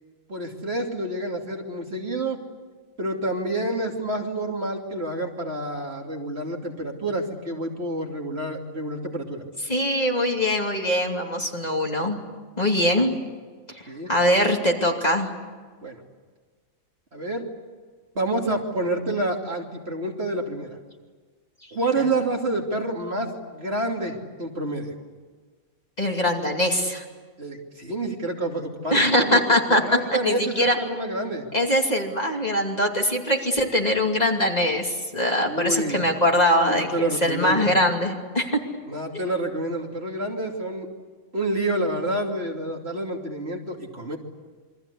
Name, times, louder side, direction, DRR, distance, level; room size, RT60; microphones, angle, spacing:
voice 1, 0.3-2.4 3.0-9.4 13.9-14.1 15.8-16.0 17.1-17.5 18.1-20.8 21.7-24.9 27.4-29.4 29.7-31.5 35.4-36.0 36.6-37.7 38.9-40.9 41.3-44.2, right 2 dB, 45° right, 1 dB, 3.1 m, -28 dB
voice 2, 9.7-12.2 12.6-13.1 13.7-15.3 26.0-27.0 28.9-29.8 30.1-30.8 31.5-38.6, left 1 dB, 30° left, 1 dB, 2.8 m, -22 dB
28.0 x 23.5 x 8.4 m, 1.5 s
omnidirectional pair, 1.5 m